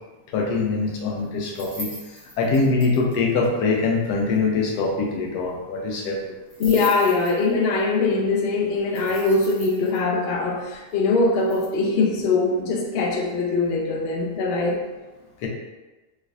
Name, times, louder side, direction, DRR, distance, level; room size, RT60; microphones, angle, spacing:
voice 1, 0.3-1.9 2.4-6.2 15.4-15.5, left 3 dB, 90° left, 0 dB, 1.2 m, -23 dB
sound 1, 1.4-3.1 3.4-3.5 3.7-3.8 4.0-4.1 4.4-4.5 6.5-7.7 8.9-10.0 11.3-11.7, right 1 dB, 10° left, 0.7 m, -39 dB
voice 2, 6.6-14.8, left 3 dB, 75° left, 0 dB, 0.5 m, -22 dB
3.2 x 3.1 x 2.4 m, 1.1 s
omnidirectional pair, 1.7 m